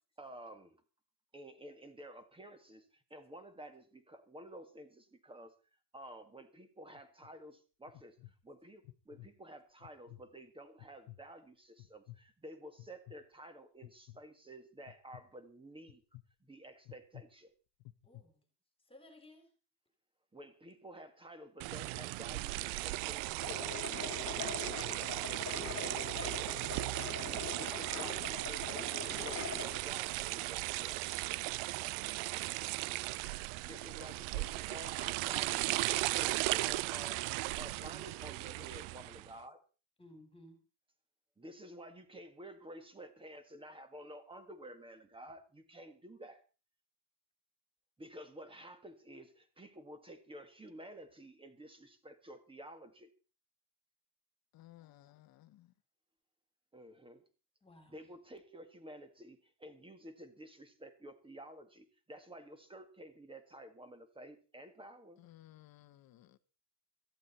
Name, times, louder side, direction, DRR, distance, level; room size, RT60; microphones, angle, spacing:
voice 1, 0.2-0.8 1.3-5.5 5.9-16.0 16.4-17.5 20.3-26.7 27.5-31.2 33.6-37.3 37.6-39.6 41.4-46.4 48.0-53.1 56.7-57.2 57.9-65.2, right 1 dB, 10° right, 1.8 m, -52 dB
sound 1, 6.9-7.3 7.9-8.3 8.8-9.3 9.8-10.2 10.8-11.2 11.8-12.2 12.8-13.2 13.8-14.2 14.9-15.2 15.9-16.2 16.9-17.2 17.8-18.2, left 18 dB, 70° left, 1.1 m, -52 dB
voice 2, 18.0-18.4 18.9-19.5 40.0-40.6 57.6-58.0, left 1 dB, 10° left, 3.3 m, -57 dB
sound 2, 21.6-39.3, right 20 dB, 70° right, 0.7 m, -37 dB
sound 3, 23.4-29.8, left 6 dB, 30° left, 2.4 m, -43 dB
voice 3, 54.5-55.7 65.2-66.4, left 15 dB, 45° left, 1.1 m, -58 dB
17.5 x 14.5 x 4.3 m
cardioid pair, 155°, 49 cm